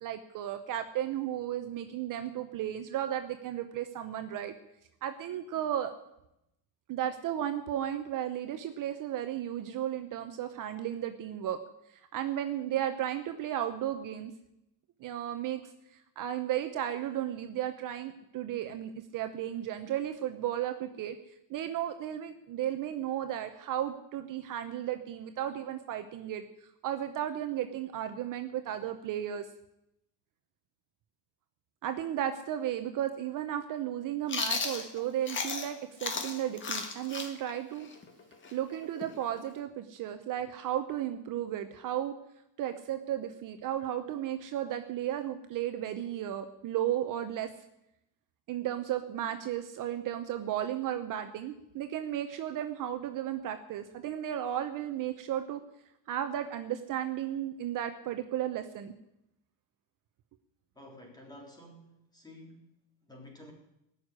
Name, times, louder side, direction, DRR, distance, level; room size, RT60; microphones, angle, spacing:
voice 1, 0.0-4.5 5.0-5.9 6.9-11.6 12.1-14.3 15.0-15.6 16.2-21.2 21.5-26.4 26.8-29.4 31.8-37.9 38.5-42.1 42.6-47.5 48.5-55.6 56.1-58.9, right 11 dB, 45° right, 8 dB, 1.0 m, -34 dB
Chewing mastication, 34.3-35.7 36.0-39.6, left 4 dB, 25° left, 1.7 m, -35 dB
voice 2, 60.8-62.7 63.1-63.5, left 1 dB, 10° left, 0 dB, 3.4 m, -51 dB
18.5 x 6.7 x 9.9 m, 0.84 s
cardioid pair, 155°, 45 cm